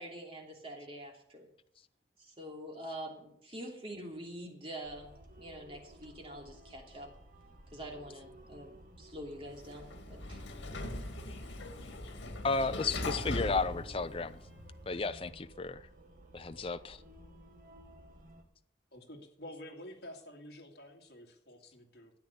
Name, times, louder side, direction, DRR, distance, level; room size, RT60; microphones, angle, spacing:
voice 1, 0.0-1.5 2.2-5.1 5.4-7.1 7.7-10.4, right 1 dB, 30° right, 3.0 m, -45 dB
sound 1, 4.8-18.4, right 1 dB, 45° right, 1.8 m, -55 dB
Sliding door, 9.5-14.7, left 1 dB, 85° left, 1.8 m, -40 dB
voice 2, 12.4-14.4 14.9-15.8 16.3-17.0, left 4 dB, 30° left, 0.5 m, -33 dB
voice 3, 18.9-22.1, left 1 dB, 60° left, 2.5 m, -49 dB
13.0 x 9.4 x 7.0 m
head